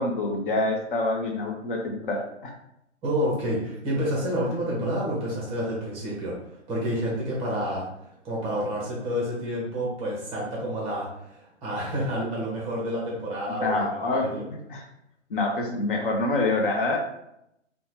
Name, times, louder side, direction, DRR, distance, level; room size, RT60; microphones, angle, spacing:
voice 1, 0.0-2.5 13.5-14.8 15.3-17.0, left 2 dB, 45° left, 1 dB, 0.5 m, -26 dB
voice 2, 3.0-7.9 8.2-13.9 14.3-14.4, equal, 15° right, -4 dB, 0.7 m, -29 dB
2.7 x 2.1 x 3.1 m, 0.79 s
hypercardioid pair, 130°, 36 cm